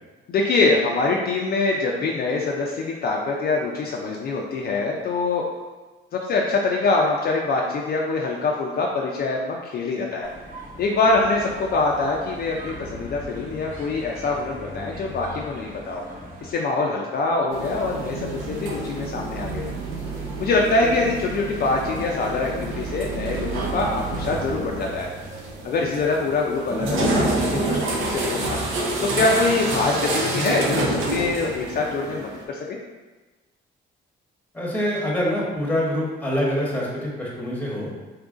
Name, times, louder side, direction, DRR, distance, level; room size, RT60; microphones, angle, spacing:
voice 1, 0.3-5.4 6.1-10.3 10.8-16.0 16.4-19.7 20.4-25.1 25.6-28.6 29.0-32.6, left 3 dB, 50° left, -1 dB, 0.4 m, -24 dB
sound 1, 10.2-16.5, equal, 45° right, 0.8 m, -39 dB
sound 2, 17.5-32.4, right 2 dB, 85° right, 0.6 m, -28 dB
voice 2, 34.5-37.9, equal, 10° left, -4 dB, 1.0 m, -25 dB
2.8 x 2.5 x 3.6 m, 1.2 s
cardioid pair, 90°, 20 cm